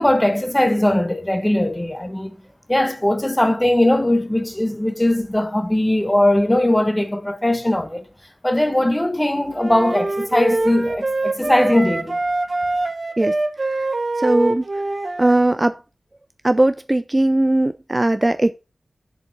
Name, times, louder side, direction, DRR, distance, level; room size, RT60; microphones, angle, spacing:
voice 1, 0.0-2.4 2.7-8.1 8.4-12.2, left 1 dB, 15° left, 1.3 m, -19 dB
sound 1, 9.6-15.4, right 2 dB, 50° right, 1.0 m, -24 dB
voice 2, 14.2-14.6 15.2-15.8 16.4-18.5, right 1 dB, 25° right, 0.4 m, -18 dB
6.9 x 4.8 x 6.1 m
wide cardioid pair, 65°, 0 cm